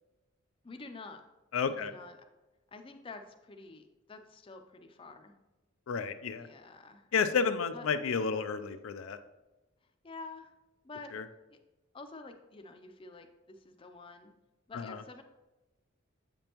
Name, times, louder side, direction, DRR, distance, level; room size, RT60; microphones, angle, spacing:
voice 1, 0.6-1.2 1.7-2.1 2.7-5.4 6.4-7.1 7.7-7.9 10.0-10.5 10.8-11.1 11.5-11.6 11.9-14.3 14.7-15.2, left 3 dB, 25° left, 6 dB, 0.5 m, -48 dB
voice 2, 1.5-1.9 5.9-6.5 7.1-9.2 11.1-11.2 14.7-15.0, left 5 dB, 80° left, 10 dB, 0.4 m, -31 dB
7.7 x 5.2 x 2.9 m, 1.1 s
head